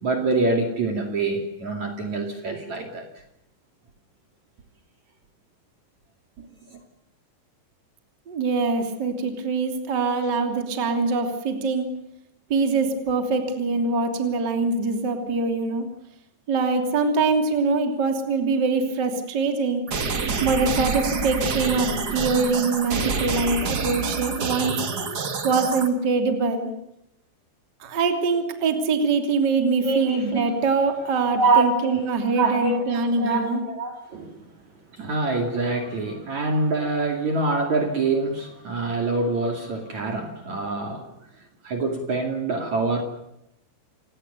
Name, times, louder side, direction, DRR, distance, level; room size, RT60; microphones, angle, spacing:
voice 1, 0.0-3.1 6.4-6.8 29.8-30.5 31.3-32.0 32.4-34.4 34.9-41.1 41.6-43.0, right 3 dB, 45° right, 4 dB, 3.3 m, -25 dB
voice 2, 8.3-11.9 12.5-15.9 16.5-19.8 20.4-24.7 25.4-26.7 27.8-33.6, right 4 dB, 25° right, 5 dB, 2.9 m, -23 dB
sound 1, 19.9-25.9, right 4 dB, 90° right, 0.8 m, -27 dB
28.5 x 19.0 x 6.8 m, 0.84 s
omnidirectional pair, 5.3 m